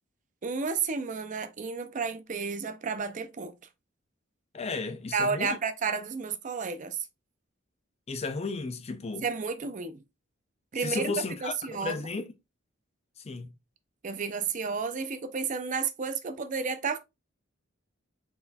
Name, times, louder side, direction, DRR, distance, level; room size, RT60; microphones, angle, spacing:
voice 1, 0.4-3.6 5.1-7.1 9.2-10.0 10.7-11.1 11.4-12.1 14.0-17.0, right 5 dB, 40° right, 0.5 m, -32 dB
voice 2, 4.5-5.6 8.1-9.2 10.8-12.3 13.2-13.5, left 3 dB, 35° left, 0.5 m, -34 dB
4.1 x 4.0 x 2.3 m
head